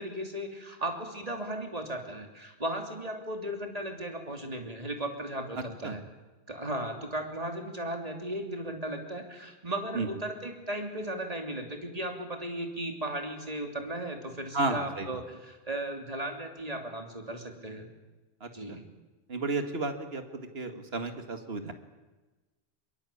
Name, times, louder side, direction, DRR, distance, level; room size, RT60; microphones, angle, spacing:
voice 1, 0.0-6.0 6.5-17.9 18.5-18.8, right 1 dB, 35° right, 4 dB, 3.3 m, -36 dB
voice 2, 14.5-15.2 18.4-18.8 19.3-20.2 20.5-21.7, right 3 dB, 65° right, 7 dB, 2.3 m, -32 dB
23.0 x 22.0 x 8.6 m, 1.2 s
omnidirectional pair, 1.1 m